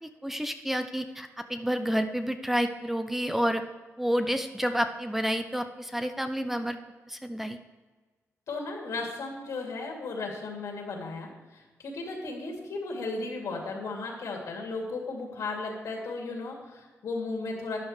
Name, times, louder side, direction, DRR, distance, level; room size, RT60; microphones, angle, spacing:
voice 1, 0.0-3.6 4.0-6.8 7.1-7.6, equal, 5° right, 8 dB, 0.5 m, -29 dB
voice 2, 8.5-17.8, left 3 dB, 80° left, 0 dB, 2.7 m, -35 dB
12.0 x 10.0 x 3.2 m, 1.3 s
wide cardioid pair, 130°, 5 cm